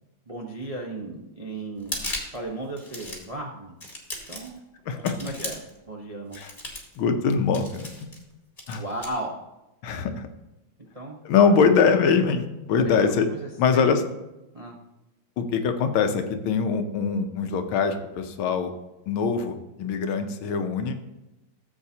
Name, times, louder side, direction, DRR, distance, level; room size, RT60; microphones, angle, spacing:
voice 1, 0.3-2.0 2.3-3.8 4.3-4.6 4.9-6.4 8.7-9.4 10.9-11.2 11.5-11.7 12.8-13.9 14.5-14.8, right 2 dB, 45° right, -1 dB, 0.4 m, -35 dB
sound 1, 1.8-2.4 2.8-3.3 3.8-4.6 5.0-5.8 6.3-7.0 7.5-8.2 8.6-9.1, left 1 dB, 20° left, 1.8 m, -36 dB
voice 2, 4.9-5.2 6.4-6.5 7.0-7.9 8.7-8.8 9.8-10.3 11.2-13.3 13.6-14.0 15.4-18.7 19.1-21.0, left 5 dB, 90° left, 7 dB, 1.7 m, -23 dB
14.5 x 7.6 x 2.8 m, 0.96 s
omnidirectional pair, 2.2 m